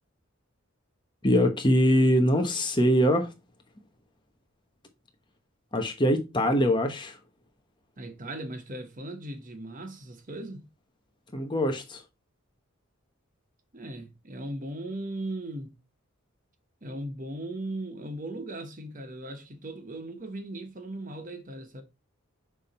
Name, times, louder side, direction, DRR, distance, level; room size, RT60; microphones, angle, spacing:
voice 1, 1.2-3.3 5.7-7.2 11.3-12.0, equal, 20° left, 1.1 m, -23 dB
voice 2, 8.0-10.7 13.7-15.7 16.8-21.8, right 1 dB, 40° right, 1.2 m, -38 dB
6.4 x 3.6 x 4.3 m
head